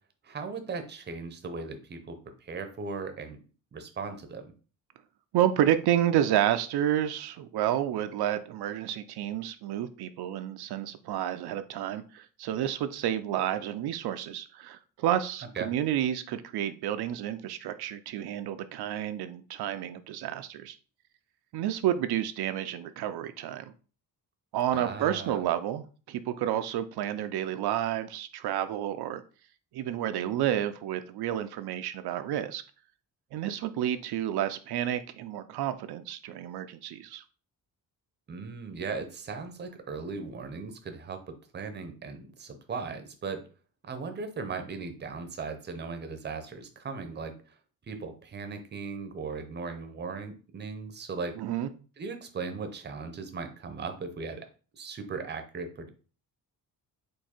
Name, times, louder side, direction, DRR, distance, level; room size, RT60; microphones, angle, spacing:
voice 1, 0.2-3.4 3.7-4.4 15.6-15.7 24.7-25.5 38.3-43.4 43.8-47.6 47.9-51.3 52.0-54.5 54.7-55.9, right 4 dB, 30° right, 7 dB, 0.6 m, -38 dB
voice 2, 5.3-20.8 21.5-23.7 24.5-29.2 29.7-32.6 33.3-37.2 51.4-51.7, right 11 dB, 80° right, 9 dB, 0.5 m, -30 dB
4.6 x 2.6 x 4.3 m, 0.37 s
wide cardioid pair, 165°, 38 cm